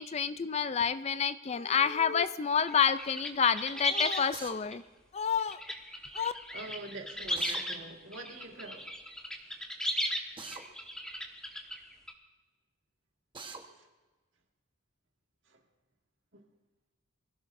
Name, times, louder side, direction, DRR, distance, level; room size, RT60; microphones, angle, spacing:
voice 1, 0.0-4.8 5.1-5.6 6.1-6.3, left 7 dB, 30° left, 0.4 m, -29 dB
sound 1, 2.7-4.2 4.7-4.8 5.4-7.8 8.1-12.1, equal, 5° left, 1.3 m, -36 dB
Drill, 4.3-4.6 7.4-7.6 10.4-10.7 13.3-13.6, right 4 dB, 25° right, 1.2 m, -43 dB
voice 2, 6.5-9.0 13.7-13.9 15.5-15.6 16.3-16.4, right 2 dB, 60° right, 1.8 m, -45 dB
24.5 x 16.0 x 2.6 m
head